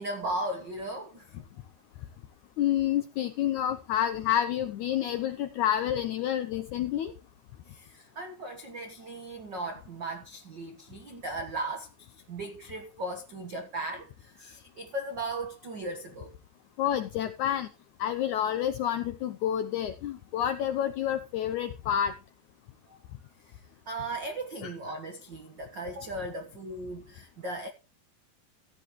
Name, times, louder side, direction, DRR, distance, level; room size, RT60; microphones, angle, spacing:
voice 1, 0.0-1.3 7.7-16.3 22.9-23.0 23.4-23.6 23.9-27.7, right 2 dB, 80° right, 1.0 m, -37 dB
voice 2, 2.6-7.1 16.8-17.7 18.0-22.1 24.6-24.7, left 10 dB, 80° left, 1.7 m, -29 dB
15.0 x 10.5 x 3.1 m
omnidirectional pair, 4.4 m